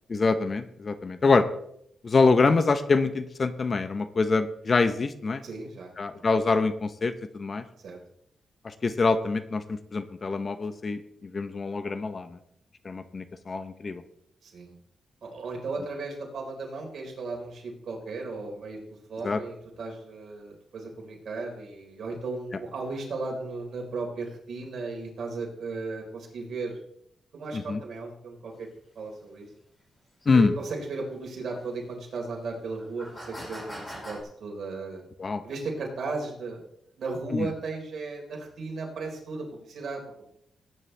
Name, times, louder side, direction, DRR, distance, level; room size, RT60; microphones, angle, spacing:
voice 1, 0.1-1.4 2.0-5.4 6.0-7.6 8.6-12.4 12.8-14.0 19.2-19.4 27.5-27.8 30.3-30.5 35.2-35.4 37.3-37.5, left 4 dB, 40° left, 11 dB, 0.9 m, -25 dB
voice 2, 5.4-6.2 7.8-8.0 14.4-14.7 15.2-18.8 19.1-26.8 27.3-28.7 28.9-29.5 30.3-35.0 35.4-36.6 37.0-40.0, right 3 dB, 65° right, -1 dB, 4.4 m, -35 dB
sound 1, 28.5-28.6 29.1-29.2 30.2-30.3 31.5-31.6 32.1-32.2 32.8-34.2, equal, 20° left, 5.7 m, -41 dB
18.0 x 9.8 x 3.4 m, 0.72 s
cardioid pair, 110°, 0 cm